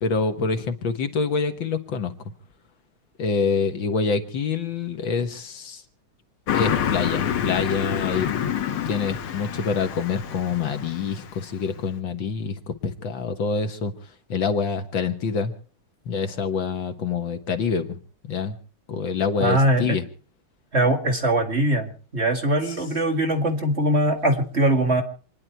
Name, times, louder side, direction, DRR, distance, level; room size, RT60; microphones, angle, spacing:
voice 1, 0.0-2.1 3.2-5.8 6.5-8.3 8.9-13.9 14.3-15.5 16.1-18.6 18.9-20.0, left 5 dB, 65° left, 8 dB, 2.1 m, -26 dB
Car passing by, 6.5-11.4, left 9 dB, 80° left, 2.0 m, -27 dB
voice 2, 19.4-20.0 20.7-25.0, right 1 dB, 30° right, 2 dB, 2.4 m, -21 dB
27.5 x 10.5 x 4.5 m, 0.41 s
omnidirectional pair, 2.3 m